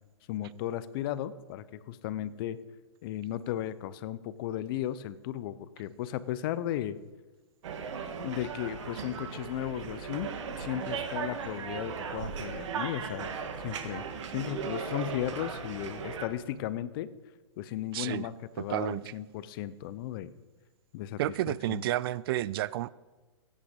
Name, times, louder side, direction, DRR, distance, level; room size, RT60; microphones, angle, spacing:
voice 1, 0.3-2.6 3.0-7.0 8.2-17.1 17.6-20.3 20.9-21.2 21.5-21.8, left 12 dB, 45° left, 0.7 m, -35 dB
sound 1, 7.6-16.3, right 6 dB, 65° right, 1.8 m, -37 dB
voice 2, 17.9-18.3 18.6-19.0 21.2-22.9, right 14 dB, 50° right, 0.4 m, -31 dB
17.0 x 8.9 x 5.3 m
hypercardioid pair, 130°, 16 cm